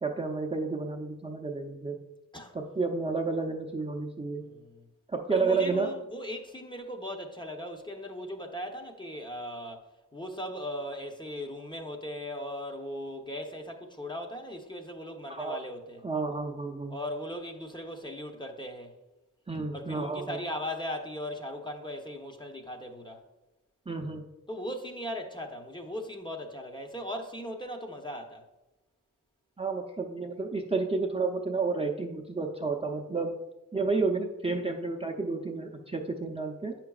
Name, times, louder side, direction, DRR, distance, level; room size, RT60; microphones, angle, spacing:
voice 1, 0.0-2.0 2.5-4.4 5.1-5.9 15.3-15.6 16.0-16.9 19.5-20.4 23.9-24.2 29.6-33.3 33.7-36.8, right 4 dB, 20° right, 0.6 m, -31 dB
voice 2, 4.4-4.8 5.3-16.0 16.9-18.9 19.7-23.2 24.5-28.5, equal, 15° left, 0.8 m, -38 dB
8.3 x 5.9 x 2.4 m
cardioid pair, 65°, 32 cm